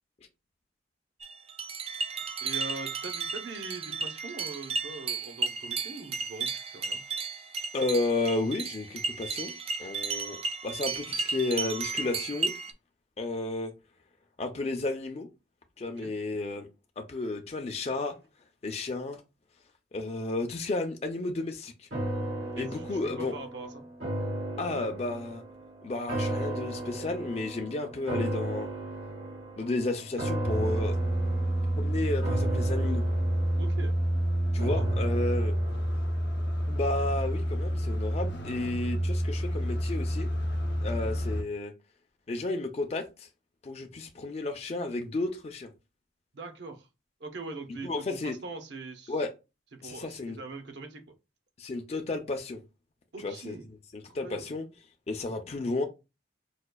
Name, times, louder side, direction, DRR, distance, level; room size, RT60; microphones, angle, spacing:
sound 1, 1.2-12.7, right 4 dB, 35° right, 0.3 m, -34 dB
voice 1, 2.4-7.0 16.0-16.1 22.6-23.8 33.6-33.9 34.6-35.0 46.3-46.9 47.2-49.2 49.7-51.0 53.1-53.7 54.1-54.5, right 3 dB, 70° right, 0.7 m, -42 dB
voice 2, 7.7-9.5 9.8-12.5 13.2-13.7 14.4-15.3 15.8-16.7 17.0-18.1 18.6-19.2 19.9-21.9 22.6-23.3 24.6-25.4 25.8-28.7 29.6-31.0 31.8-33.1 34.5-35.5 36.7-40.3 40.8-41.7 42.3-43.3 43.6-45.7 47.8-48.4 49.1-49.3 49.8-50.4 51.6-52.6 53.2-53.6 53.9-54.6 55.1-55.8, left 2 dB, 35° left, 0.4 m, -32 dB
sound 2, 21.9-37.2 37.6-37.7, right 1 dB, 90° right, 1.6 m, -36 dB
sound 3, 30.4-41.4, right 1 dB, 75° left, 0.7 m, -28 dB
4.9 x 2.4 x 2.2 m
head